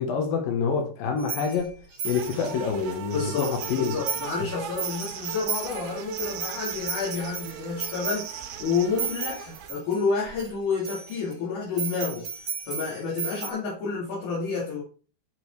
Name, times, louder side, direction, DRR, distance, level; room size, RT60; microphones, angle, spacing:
voice 1, 0.0-1.7 2.0-3.9, left 5 dB, 65° left, 2.6 m, -27 dB
sound 1, 1.2-2.9 3.3-4.4 4.7-10.5 10.8-11.3 11.8-13.5, right 6 dB, 35° right, 3.2 m, -35 dB
sound 2, 2.0-9.7, right 10 dB, 80° right, 2.8 m, -38 dB
voice 2, 3.1-14.8, left 5 dB, 50° left, 3.6 m, -30 dB
11.5 x 5.3 x 3.2 m
omnidirectional pair, 5.0 m